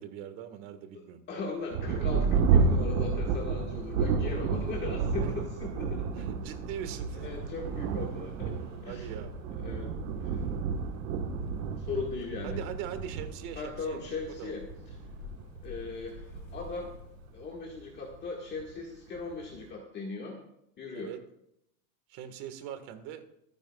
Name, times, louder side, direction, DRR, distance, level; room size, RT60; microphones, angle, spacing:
voice 1, 0.0-1.2 6.2-7.3 8.9-9.3 12.4-14.5 20.9-21.2 22.1-23.2, right 10 dB, 50° right, 8 dB, 1.8 m, -41 dB
voice 2, 0.9-6.1 7.1-8.5 8.8-9.1 9.6-9.9 10.2-10.4 11.8-12.6 13.6-14.6 15.6-16.9 17.3-20.4 20.8-21.1, left 4 dB, 25° left, -1 dB, 1.9 m, -38 dB
Thunder, 1.7-17.8 18.5-18.6 19.2-19.6, right 5 dB, 80° right, 1.5 m, -31 dB
sound 1, 2.4-17.5, left 6 dB, 75° left, 4.2 m, -51 dB
25.5 x 9.6 x 2.4 m, 0.76 s
supercardioid pair, 155°, 42 cm